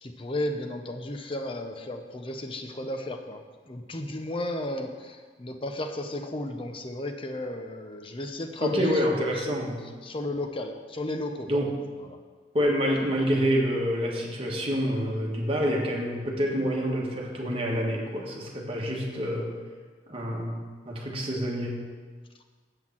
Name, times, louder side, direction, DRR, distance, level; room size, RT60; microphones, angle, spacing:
voice 1, 0.0-9.6 10.0-11.7 12.1-12.2, left 1 dB, 30° left, 5 dB, 0.7 m, -34 dB
voice 2, 8.6-9.8 11.5-11.7 12.5-19.5 20.1-21.8, equal, 30° right, -1 dB, 1.5 m, -27 dB
7.7 x 6.3 x 7.4 m, 1.4 s
head